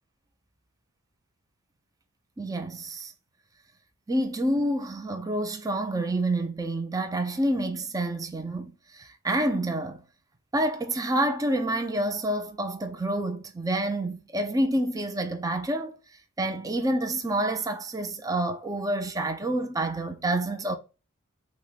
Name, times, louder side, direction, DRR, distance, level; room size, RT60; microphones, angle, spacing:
voice 1, 2.4-3.1 4.1-10.0 10.5-15.9 16.4-20.8, right 1 dB, 15° right, 0.5 m, -28 dB
6.0 x 2.2 x 4.0 m
head